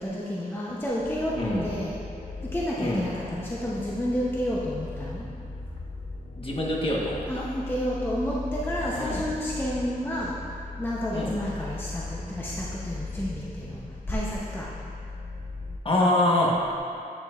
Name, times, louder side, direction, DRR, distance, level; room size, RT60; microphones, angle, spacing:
voice 1, 0.0-1.4 1.6-1.9 2.4-5.3 7.3-10.3 10.8-13.8 14.1-14.7, equal, 15° left, -6 dB, 0.7 m, -30 dB
sound 1, 1.0-15.8, left 3 dB, 60° left, 0.6 m, -38 dB
voice 2, 1.3-1.7 2.8-3.1 6.4-7.4 8.9-9.3 11.1-11.4 15.8-16.5, left 1 dB, 35° left, -4 dB, 1.1 m, -25 dB
8.8 x 6.7 x 2.4 m, 2.5 s
wide cardioid pair, 95°, 15 cm